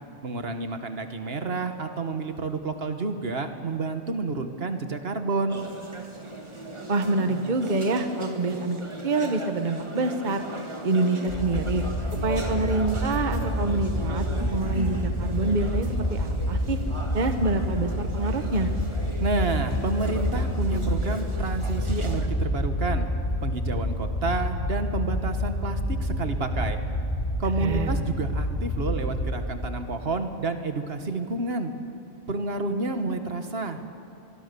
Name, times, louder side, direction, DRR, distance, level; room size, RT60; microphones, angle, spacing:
voice 1, 0.2-5.6 19.2-23.1 23.4-26.8 27.4-31.7 32.3-33.9, right 3 dB, 70° right, 7 dB, 1.6 m, -29 dB
sound 1, 5.5-22.3, right 1 dB, 30° right, 1.8 m, -37 dB
voice 2, 6.9-10.4 10.8-11.8 12.2-16.8 17.1-18.7 27.6-28.0, right 3 dB, 45° right, 7 dB, 1.2 m, -26 dB
sound 2, 11.3-29.4, left 1 dB, 75° left, 6.8 m, -28 dB
23.5 x 23.0 x 6.9 m, 2.5 s
omnidirectional pair, 1.1 m